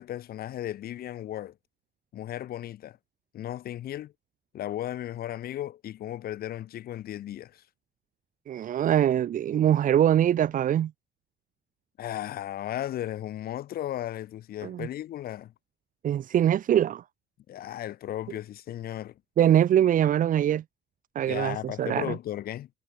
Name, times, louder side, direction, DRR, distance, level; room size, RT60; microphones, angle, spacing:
voice 1, 0.0-1.6 2.1-3.0 3.3-4.1 4.5-7.6 12.0-15.5 17.5-19.2 21.3-22.7, left 12 dB, 65° left, 3.1 m, -35 dB
voice 2, 8.5-10.9 14.6-14.9 16.0-17.0 19.4-20.6 21.1-22.1, right 10 dB, 50° right, 1.4 m, -23 dB
cardioid pair, 110°, 17 cm